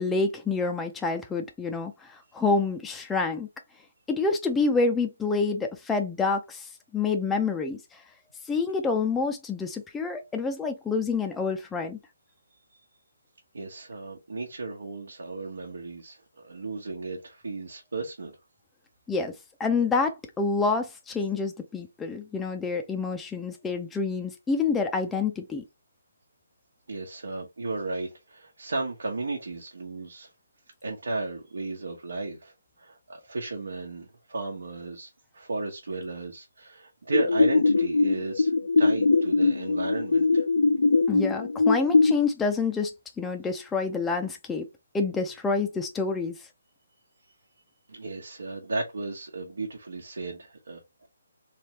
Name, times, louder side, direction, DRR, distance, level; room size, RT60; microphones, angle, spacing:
voice 1, 0.0-3.5 4.1-8.0 8.5-12.0 19.1-19.3 19.6-25.6 41.1-42.9 43.2-44.7 44.9-46.4, left 4 dB, 5° left, 0.4 m, -27 dB
voice 2, 13.5-18.3 26.9-30.3 30.8-40.4 47.9-51.1, right 3 dB, 85° right, 1.0 m, -35 dB
sound 1, 37.1-42.1, left 3 dB, 85° left, 0.4 m, -21 dB
3.2 x 3.2 x 2.9 m
hypercardioid pair, 160°, 0 cm